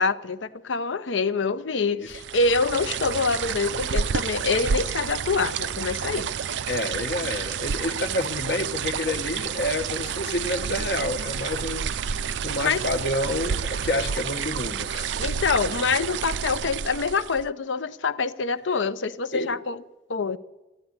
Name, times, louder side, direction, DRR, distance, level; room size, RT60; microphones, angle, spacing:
voice 1, 0.0-6.3 12.6-12.8 15.2-19.8 20.1-20.4, left 4 dB, 80° left, 0.7 m, -25 dB
sound 1, 2.1-17.5, right 7 dB, 70° right, 0.4 m, -30 dB
voice 2, 6.7-15.3 19.3-19.6, left 1 dB, 65° left, 1.0 m, -29 dB
13.5 x 10.5 x 9.6 m
head